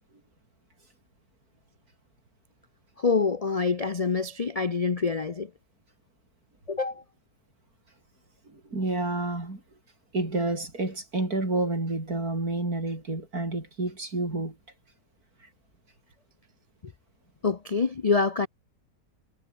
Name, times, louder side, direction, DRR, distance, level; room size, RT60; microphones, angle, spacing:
voice 1, 3.0-5.5 6.7-7.0 16.8-16.9 17.4-18.5, left 4 dB, 40° left, 0.5 m, -26 dB
voice 2, 8.5-9.6 10.1-14.6, right 2 dB, 65° right, 6.2 m, -29 dB
omnidirectional pair, 1.7 m